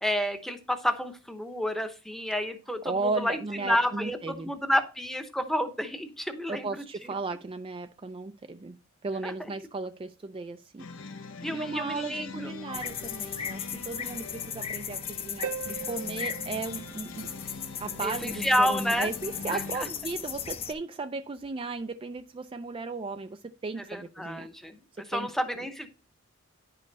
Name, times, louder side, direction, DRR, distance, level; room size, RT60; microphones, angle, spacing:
voice 1, 0.0-6.8 9.2-9.3 11.4-12.8 18.0-19.1 19.5-19.9 23.9-24.8 25.1-25.9, equal, ahead, 0.8 m, -30 dB
voice 2, 2.8-4.5 6.5-8.8 9.0-17.3 17.8-24.5 24.9-25.3, right 3 dB, 25° right, 0.3 m, -36 dB
sound 1, 10.8-19.8, left 4 dB, 70° left, 0.8 m, -43 dB
sound 2, 12.7-20.7, left 8 dB, 30° left, 0.6 m, -37 dB
Harp, 15.4-17.9 21.4-21.5, right 7 dB, 85° right, 0.5 m, -40 dB
10.5 x 5.3 x 4.0 m
head